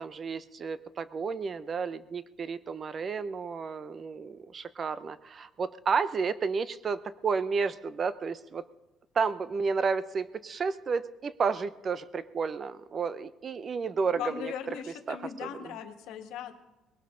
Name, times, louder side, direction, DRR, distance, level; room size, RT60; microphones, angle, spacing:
voice 1, 0.0-8.6 9.1-14.5 15.1-15.5, right 5 dB, 30° right, 15 dB, 0.5 m, -31 dB
voice 2, 14.1-16.6, left 9 dB, 85° left, 6 dB, 1.5 m, -38 dB
20.0 x 17.5 x 3.8 m, 1.0 s
cardioid pair, 160°, 0 cm